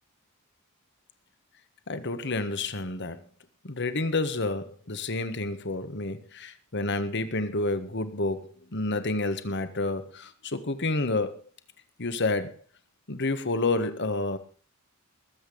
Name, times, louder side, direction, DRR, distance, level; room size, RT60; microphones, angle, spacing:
voice 1, 1.9-3.2 3.6-11.4 12.0-12.5 13.1-14.4, left 2 dB, 55° left, 1.5 m, -29 dB
20.0 x 8.2 x 5.3 m
head